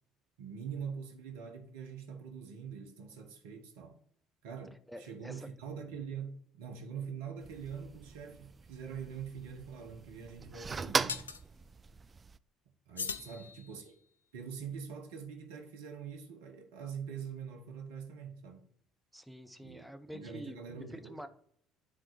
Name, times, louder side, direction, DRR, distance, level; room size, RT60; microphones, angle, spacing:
voice 1, 0.4-4.0 4.4-11.2 12.9-13.9 14.3-18.7 19.6-21.2, right 7 dB, 70° right, 1.0 m, -44 dB
voice 2, 4.9-5.5 13.2-13.5 19.1-20.6 20.9-21.3, equal, ahead, 0.9 m, -47 dB
sound 1, 7.4-12.4, right 4 dB, 30° right, 0.3 m, -39 dB
sound 2, 9.1-9.2 11.1-11.4 13.0-14.1, left 6 dB, 85° left, 0.3 m, -41 dB
9.7 x 3.7 x 3.4 m
figure-of-eight pair, 55°, 0 cm